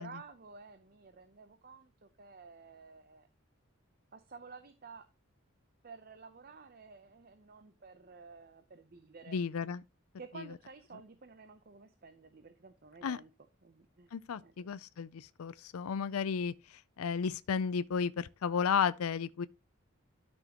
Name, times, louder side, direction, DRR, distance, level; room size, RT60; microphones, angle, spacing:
voice 1, 0.0-3.3 4.1-5.1 5.8-9.4 10.2-13.3 13.6-14.8, right 4 dB, 45° right, 0.7 m, -52 dB
voice 2, 9.3-9.8 10.4-10.5 13.0-13.2 14.1-19.5, left 6 dB, 90° left, 0.4 m, -33 dB
12.0 x 6.3 x 2.9 m
head